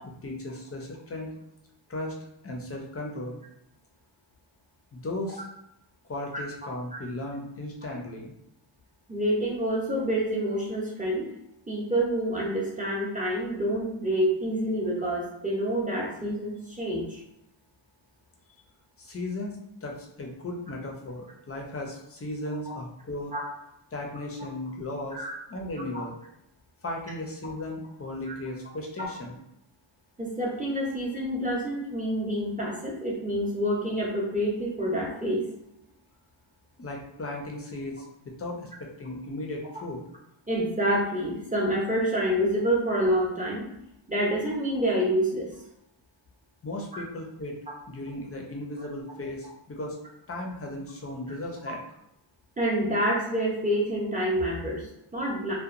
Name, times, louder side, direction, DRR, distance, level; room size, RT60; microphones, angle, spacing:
voice 1, 0.2-1.3 1.9-2.2 2.4-3.4 4.9-5.4 6.1-8.3 19.0-23.3 23.9-25.2 25.5-26.2 26.8-29.4 36.8-40.0 46.6-47.6 47.8-50.0 50.3-51.8, left 1 dB, 30° left, 0 dB, 0.4 m, -36 dB
voice 2, 9.1-11.3 11.7-17.2 23.3-23.4 25.1-25.3 28.3-28.4 30.2-35.4 40.5-43.7 44.1-45.5 46.9-47.0 52.6-55.5, equal, 15° right, -5 dB, 0.6 m, -27 dB
2.8 x 2.1 x 2.5 m, 0.81 s
wide cardioid pair, 150°, 48 cm